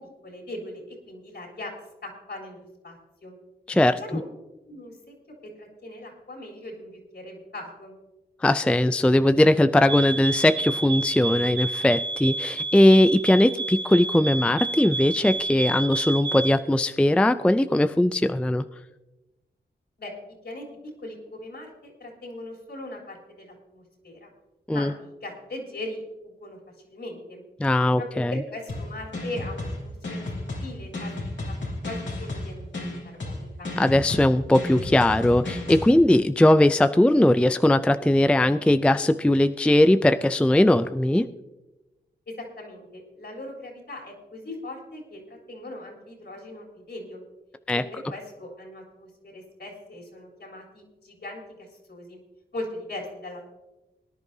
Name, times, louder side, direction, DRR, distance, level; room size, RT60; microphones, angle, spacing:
voice 1, 0.0-1.7 2.0-3.4 4.0-4.2 4.7-5.1 5.6-7.9 20.0-20.1 20.4-24.3 24.7-27.4 28.0-30.3 30.6-31.5 31.8-32.9 33.1-33.7 42.4-47.2 47.7-52.2 52.5-53.5, left 1 dB, 65° left, -1 dB, 3.8 m, -39 dB
voice 2, 3.7-4.0 8.4-18.6 24.7-24.9 27.6-28.3 33.8-41.3 47.7-47.8, left 1 dB, 5° left, 11 dB, 0.4 m, -20 dB
sound 1, 9.9-16.6, right 3 dB, 80° right, 1.2 m, -30 dB
sound 2, 28.7-35.9, left 2 dB, 85° left, 3.0 m, -33 dB
22.5 x 10.5 x 2.7 m, 1.0 s
wide cardioid pair, 80°, 19 cm